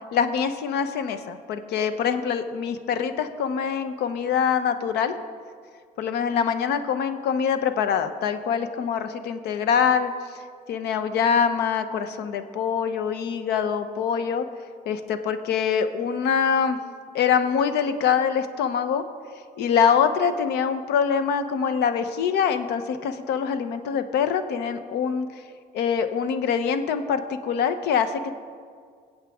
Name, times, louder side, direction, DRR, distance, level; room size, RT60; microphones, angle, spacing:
voice 1, 0.1-5.1 6.0-10.1 10.7-14.4 14.9-16.8 17.1-19.0 19.6-25.3 25.7-28.3, left 7 dB, 80° left, 10 dB, 0.9 m, -24 dB
22.5 x 8.1 x 3.6 m, 2.1 s
cardioid pair, 110°, 17 cm